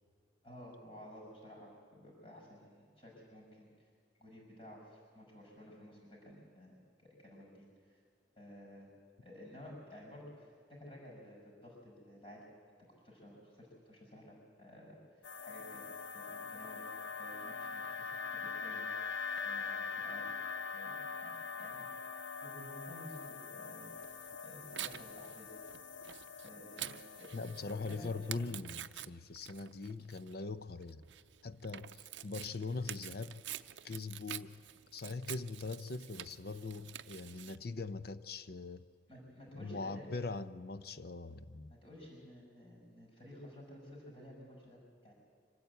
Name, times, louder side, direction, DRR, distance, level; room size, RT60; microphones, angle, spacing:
voice 1, 0.4-3.9 4.2-6.7 7.2-7.9 8.4-8.9 9.2-12.5 13.0-16.8 17.2-19.1 19.4-20.5 20.7-21.8 22.4-23.9 24.4-25.5 26.4-27.3 27.6-28.4 39.1-40.1 41.7-45.1, left 1 dB, 30° left, 6.0 m, -53 dB
sound 1, 15.2-28.5, left 5 dB, 80° left, 0.9 m, -43 dB
Tearing, 24.0-37.6, right 12 dB, 75° right, 0.5 m, -48 dB
voice 2, 27.3-31.0 31.4-33.4 33.8-34.6 34.9-38.8 39.6-41.7, left 3 dB, 55° left, 0.6 m, -41 dB
25.5 x 13.5 x 8.3 m
head